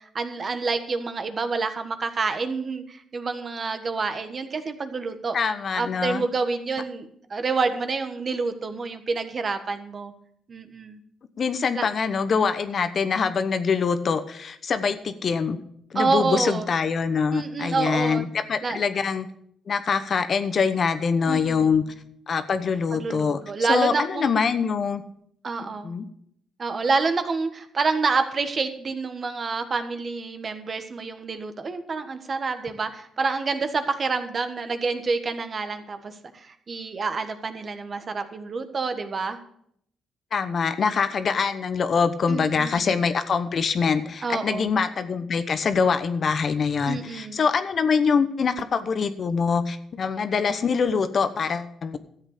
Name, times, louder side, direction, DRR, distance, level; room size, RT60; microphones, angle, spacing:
voice 1, 0.0-5.4 5.7-10.1 10.5-11.0 11.8-11.9 15.9-16.7 17.3-18.2 18.6-18.8 21.3-21.8 22.9-24.4 25.4-25.9 26.6-39.4 42.3-43.0 44.2-44.7 46.9-47.4, right 4 dB, 40° right, 9 dB, 1.3 m, -28 dB
voice 2, 5.3-6.2 11.4-15.6 15.9-19.3 19.7-21.8 22.3-23.4 23.7-25.0 25.6-26.1 40.3-52.0, left 5 dB, 50° left, 11 dB, 1.0 m, -24 dB
13.0 x 8.0 x 6.6 m, 0.69 s
cardioid pair, 90°, 0 cm